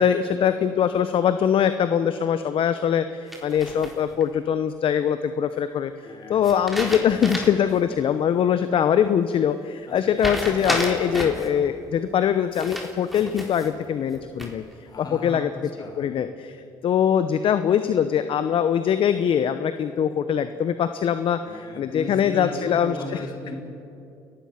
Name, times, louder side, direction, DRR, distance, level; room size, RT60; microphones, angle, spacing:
voice 1, 0.0-5.9 6.3-14.6 15.0-15.5 16.0-16.6 16.8-23.2, left 8 dB, 55° left, 11 dB, 0.8 m, -22 dB
sound 1, 3.3-4.2 6.4-7.7 8.1-8.2 10.2-11.5 12.5-13.7 14.1-14.7, equal, ahead, 3.8 m, -30 dB
voice 2, 6.0-6.5 9.9-10.0 14.8-15.5 15.8-16.2 21.4-23.5, left 1 dB, 40° left, 1 dB, 4.6 m, -36 dB
29.5 x 15.0 x 5.8 m, 2.6 s
supercardioid pair, 75°, 11 cm